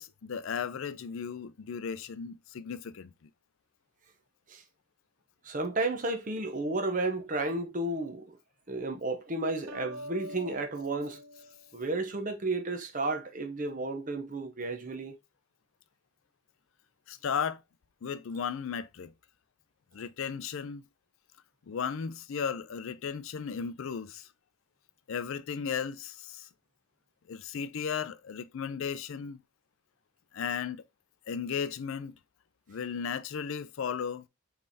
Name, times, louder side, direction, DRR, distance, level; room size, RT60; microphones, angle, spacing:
voice 1, 0.0-3.1 17.1-17.6 18.0-19.1 19.9-20.8 21.7-24.3 25.1-26.5 27.3-29.4 30.3-30.8 31.3-32.2 32.7-34.2, left 6 dB, 70° left, 0.4 m, -35 dB
voice 2, 5.4-8.3 8.7-11.2 11.7-15.2, right 2 dB, 35° right, 0.7 m, -32 dB
sound 1, 9.7-12.3, equal, 90° right, 1.1 m, -45 dB
5.3 x 3.3 x 2.7 m
head